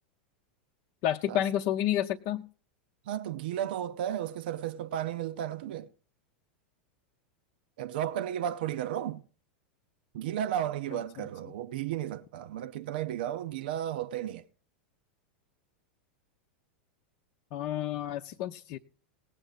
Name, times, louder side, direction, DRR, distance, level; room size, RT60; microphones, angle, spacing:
voice 1, 1.0-2.4 17.5-18.8, left 11 dB, 50° left, 0.7 m, -30 dB
voice 2, 3.1-5.9 7.8-9.2 10.1-14.4, right 11 dB, 65° right, 0.5 m, -34 dB
18.5 x 7.9 x 4.0 m
figure-of-eight pair, 90°, 6 cm